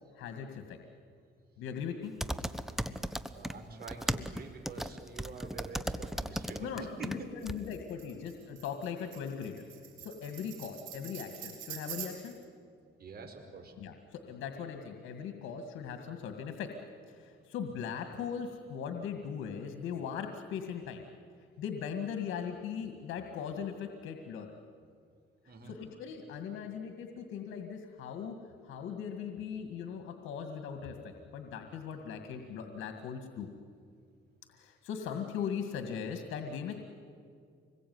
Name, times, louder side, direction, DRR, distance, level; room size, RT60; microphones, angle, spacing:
voice 1, 0.1-0.8 1.6-2.1 6.6-9.6 10.0-12.3 13.8-16.7 17.1-21.1 21.6-24.5 25.6-28.4 28.6-33.5 34.5-36.8, left 7 dB, 90° left, 6 dB, 2.1 m, -39 dB
sound 1, 2.2-3.5 3.8-7.2 7.5-7.6, equal, ahead, 1.1 m, -35 dB
voice 2, 3.3-7.3 10.5-10.6 13.0-13.7 25.5-25.8, right 4 dB, 50° right, 4 dB, 4.7 m, -46 dB
Tambourine, 7.4-12.4, right 10 dB, 90° right, 5.1 m, -46 dB
26.0 x 21.5 x 9.5 m, 2.2 s
cardioid pair, 90°, 20 cm